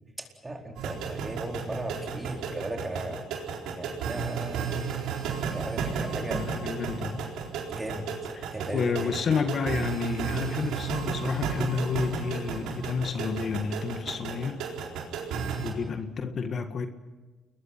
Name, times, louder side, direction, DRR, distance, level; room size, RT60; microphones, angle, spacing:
voice 1, 0.2-3.2 3.8-4.9 5.5-6.4 7.7-8.1 8.5-9.1, right 1 dB, 20° right, 2 dB, 4.4 m, -36 dB
sound 1, 0.8-15.7, right 6 dB, 90° right, 4.3 m, -33 dB
voice 2, 6.3-7.3 8.4-14.6 15.6-16.9, left 5 dB, 55° left, 7 dB, 1.8 m, -30 dB
29.5 x 21.5 x 5.9 m, 1.2 s
cardioid pair, 90°, 0 cm